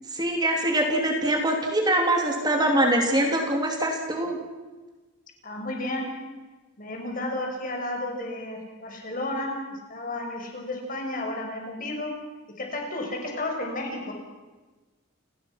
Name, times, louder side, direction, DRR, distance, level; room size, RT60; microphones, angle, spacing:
voice 1, 0.1-4.4, right 1 dB, 20° right, 2 dB, 3.2 m, -23 dB
voice 2, 5.4-6.1 6.8-12.1 12.6-14.1, left 1 dB, 40° left, 1 dB, 5.9 m, -32 dB
29.5 x 20.0 x 6.1 m, 1.2 s
head